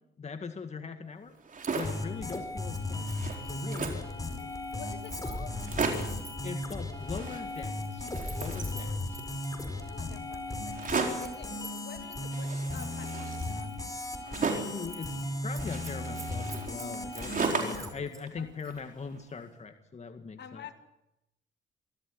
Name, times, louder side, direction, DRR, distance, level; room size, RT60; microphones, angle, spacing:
voice 1, 0.2-1.4 1.8-3.1 3.5-4.1 6.4-9.2 14.6-20.7, left 5 dB, 35° left, 7 dB, 2.0 m, -41 dB
sound 1, 1.3-2.1 2.6-2.7 2.9-4.1 4.8-4.9 5.1-5.2 5.5-6.2 7.0-7.8 8.0-9.3 10.7-11.4 12.3-14.8 15.6-17.9 18.3-19.2, right 4 dB, 45° right, 4.4 m, -35 dB
Keys jangling, 1.6-1.9 2.2-6.7 7.4-9.7 10.3-12.3 12.7-13.8 14.2-14.3 14.6-15.3 15.5-18.2 18.6-18.8, right 2 dB, 15° right, 6.4 m, -50 dB
sound 2, 1.8-17.9, left 2 dB, 15° left, 4.7 m, -36 dB
voice 2, 4.4-5.6 8.7-9.0 9.7-13.8 18.4-18.5 20.4-20.7, left 8 dB, 60° left, 7 dB, 2.4 m, -49 dB
25.5 x 14.0 x 9.9 m, 0.91 s
cardioid pair, 90°, 20 cm